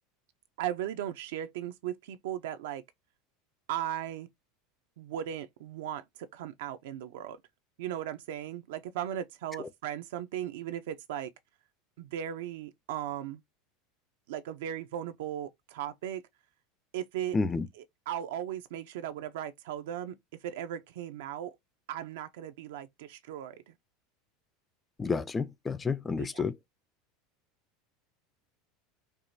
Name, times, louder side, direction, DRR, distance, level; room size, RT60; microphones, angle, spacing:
voice 1, 0.6-2.8 3.7-4.3 5.0-7.4 7.8-11.3 12.0-13.4 14.3-16.2 16.9-17.4 17.7-21.6 21.9-23.7 26.2-26.4, right 11 dB, 80° right, 0.5 m, -37 dB
voice 2, 17.3-17.7 25.0-26.5, left 4 dB, 10° left, 0.3 m, -30 dB
4.7 x 2.9 x 2.6 m
supercardioid pair, 175°, 0 cm